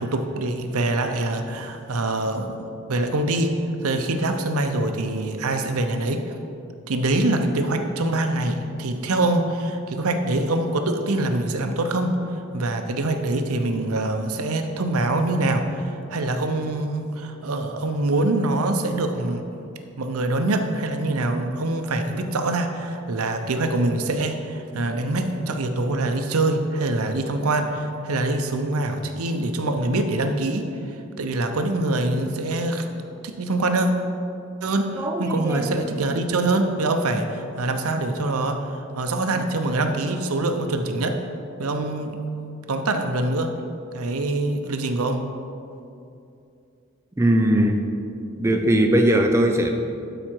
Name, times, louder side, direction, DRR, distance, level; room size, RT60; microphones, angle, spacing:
voice 1, 0.0-3.5 3.8-6.2 6.9-12.2 12.5-19.4 20.0-32.9 33.2-33.9 34.6-41.2 41.6-42.2 42.7-43.5 43.9-45.2, right 2 dB, 85° right, 6 dB, 0.7 m, -24 dB
voice 2, 35.0-35.8 47.2-47.8 48.4-49.7, right 1 dB, 15° right, 3 dB, 0.4 m, -20 dB
12.0 x 4.9 x 4.6 m, 2.6 s
head